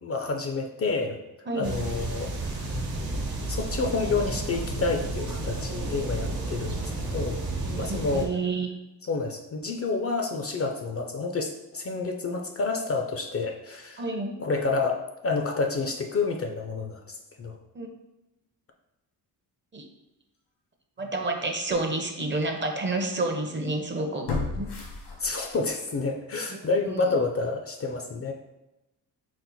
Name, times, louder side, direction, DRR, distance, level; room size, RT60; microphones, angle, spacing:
voice 1, 0.0-1.2 1.5-2.3 3.5-7.4 7.6-8.3 9.0-14.0 14.4-17.6 25.2-28.3, left 3 dB, 35° left, 4 dB, 0.4 m, -29 dB
voice 2, 1.5-1.8 7.7-8.7 14.0-14.4 17.7-17.9 19.7-19.8 21.0-24.3 24.6-24.7 26.5-26.6 26.9-27.0, right 2 dB, 30° right, 4 dB, 0.6 m, -29 dB
sound 1, 1.6-8.3, right 2 dB, 60° right, 1.1 m, -32 dB
sound 2, 21.0-21.1 21.7-21.8 24.3-25.7 26.1-26.2, left 3 dB, 80° left, 1.1 m, -33 dB
4.3 x 2.1 x 4.0 m, 0.97 s
cardioid pair, 70°, 40 cm